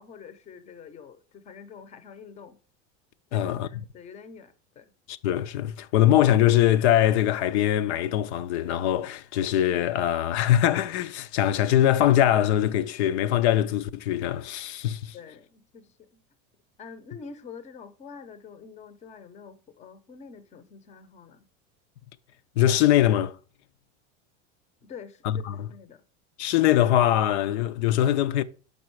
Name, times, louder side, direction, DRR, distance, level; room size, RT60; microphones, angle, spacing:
voice 1, 0.0-2.6 3.3-4.9 15.1-16.1 16.8-21.4 24.8-26.0, left 6 dB, 20° left, 0.6 m, -46 dB
voice 2, 3.3-3.7 5.1-15.2 22.6-23.4 25.2-25.7 26.4-28.4, left 12 dB, 80° left, 0.6 m, -22 dB
6.6 x 5.4 x 4.6 m
supercardioid pair, 150°, 34 cm